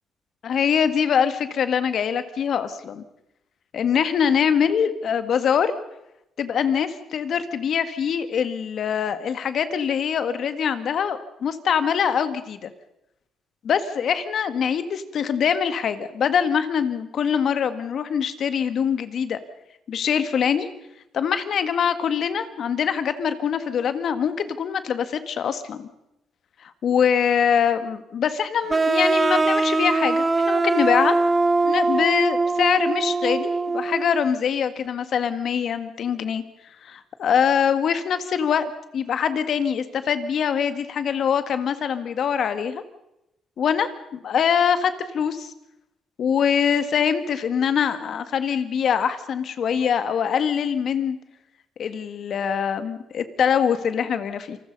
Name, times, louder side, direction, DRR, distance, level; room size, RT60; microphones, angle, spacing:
voice 1, 0.4-3.0 3.7-5.7 6.4-12.7 13.6-19.4 19.9-20.7 21.1-25.9 26.8-31.2 31.6-36.4 36.8-42.8 43.6-45.5 46.2-51.2 51.8-54.6, left 7 dB, 60° left, 11 dB, 1.8 m, -23 dB
sound 1, 28.7-34.2, right 3 dB, 25° right, 1.0 m, -22 dB
27.5 x 20.0 x 5.4 m, 0.88 s
cardioid pair, 90°, 0 cm